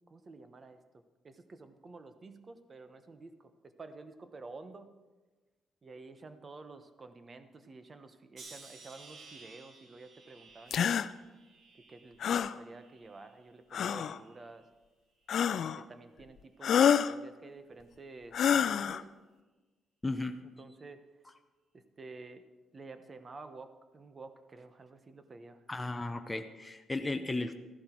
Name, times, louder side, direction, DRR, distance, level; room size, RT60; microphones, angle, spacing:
voice 1, 0.1-0.8 1.2-4.9 5.8-11.1 11.9-14.6 15.5-19.1 20.6-21.0 21.7-25.6, right 3 dB, 35° right, 9 dB, 1.1 m, -50 dB
sound 1, 8.4-13.5 13.9-14.6 15.4-15.7, right 3 dB, 65° right, 2.1 m, -56 dB
sound 2, 10.7-11.1 12.2-12.6 13.7-14.2 15.3-15.8 16.6-17.1 18.3-19.0, left 8 dB, 65° left, 0.4 m, -27 dB
voice 2, 20.0-20.4 25.7-27.5, left 2 dB, 15° left, 6 dB, 0.7 m, -35 dB
14.0 x 11.5 x 4.6 m, 1.2 s
cardioid pair, 90°, 0 cm